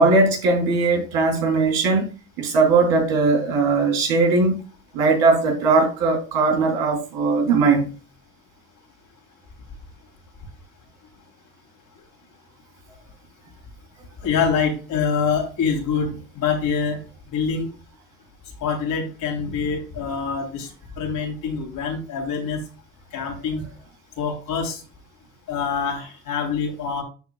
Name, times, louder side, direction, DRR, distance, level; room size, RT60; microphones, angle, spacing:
voice 1, 0.0-2.1 2.4-4.6 4.9-7.9, right 3 dB, 65° right, 3.3 m, -19 dB
voice 2, 14.2-17.0 17.3-17.7 18.6-22.6 23.1-23.6 24.2-24.8 25.5-27.0, left 6 dB, 55° left, 3.3 m, -25 dB
12.5 x 4.8 x 2.3 m
hypercardioid pair, 70°, 39 cm